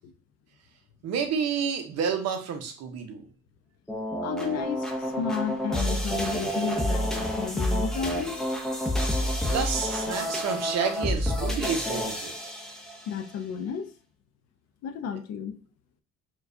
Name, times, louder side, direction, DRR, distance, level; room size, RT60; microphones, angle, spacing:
voice 1, 1.0-3.3 9.2-12.3, right 6 dB, 55° right, 0.7 m, -30 dB
sound 1, 3.9-13.1, equal, ahead, 0.6 m, -29 dB
voice 2, 4.2-8.4 13.1-13.9 14.8-15.6, left 7 dB, 55° left, 0.5 m, -32 dB
4.6 x 2.3 x 2.6 m
cardioid pair, 135°, 31 cm